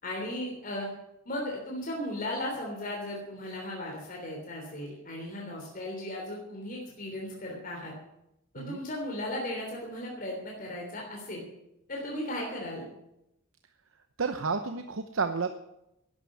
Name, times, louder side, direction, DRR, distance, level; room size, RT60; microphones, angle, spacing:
voice 1, 0.0-0.9 1.2-7.9 8.5-11.4 11.9-12.9, left 1 dB, 45° left, -1 dB, 3.3 m, -36 dB
voice 2, 14.2-15.6, right 4 dB, 70° right, 8 dB, 0.9 m, -31 dB
12.0 x 9.4 x 9.8 m, 0.87 s
head